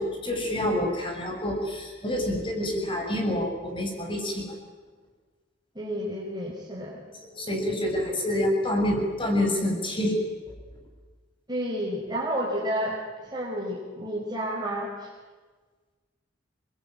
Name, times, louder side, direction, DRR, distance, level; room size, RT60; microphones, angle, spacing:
voice 1, 0.0-4.5 7.4-10.2, left 1 dB, 25° left, 3 dB, 6.7 m, -27 dB
voice 2, 5.8-7.0 11.5-13.0 13.3-15.1, equal, 20° right, -4 dB, 5.3 m, -30 dB
29.5 x 22.0 x 9.2 m, 1.4 s
head